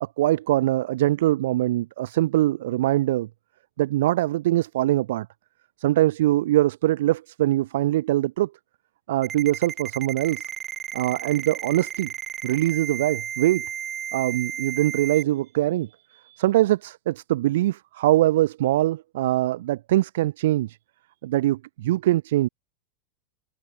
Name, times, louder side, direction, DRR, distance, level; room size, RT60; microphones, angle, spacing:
voice 1, 0.0-3.3 3.8-5.3 5.8-8.5 9.1-10.5 10.9-12.1 12.4-13.7 14.1-20.8 21.2-22.5, right 15 dB, 70° right, 0.7 m, -23 dB
Ringtone, 9.2-15.2, right 9 dB, 20° right, 0.6 m, -33 dB
supercardioid pair, 160°, 0 cm